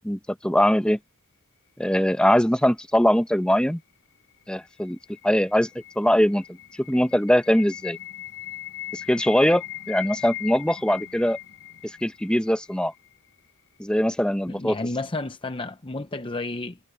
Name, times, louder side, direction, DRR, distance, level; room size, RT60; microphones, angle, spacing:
voice 1, 0.0-1.0 1.8-3.8 4.5-5.0 5.2-5.7 6.0-6.6 6.9-8.0 8.9-11.4 12.0-12.9 13.8-14.8, equal, 5° left, 1.0 m, -21 dB
sound 1, 4.4-13.4, left 13 dB, 60° left, 5.4 m, -40 dB
voice 2, 14.5-16.8, left 2 dB, 25° left, 0.7 m, -31 dB
head